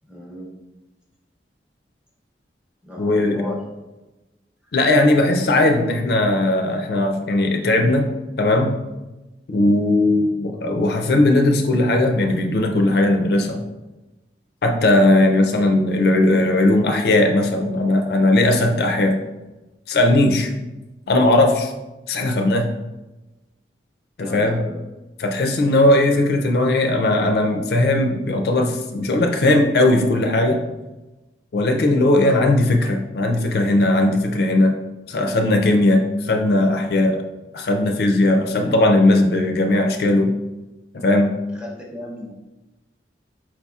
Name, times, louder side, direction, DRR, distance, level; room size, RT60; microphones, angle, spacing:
voice 1, 0.1-0.6 2.8-3.7 4.6-4.7 15.5-15.8 24.2-24.8 32.2-32.6 41.5-42.3, left 1 dB, 5° right, -3 dB, 0.7 m, -33 dB
voice 2, 3.0-3.4 4.7-8.1 8.4-8.8 9.5-13.6 14.6-19.2 19.9-20.5 21.1-21.7 22.1-22.7 24.2-24.6 25.2-30.6 31.5-34.8 35.1-37.2 37.5-40.3 40.9-41.3, left 2 dB, 55° left, 4 dB, 0.4 m, -18 dB
4.6 x 4.1 x 2.3 m, 1.1 s
head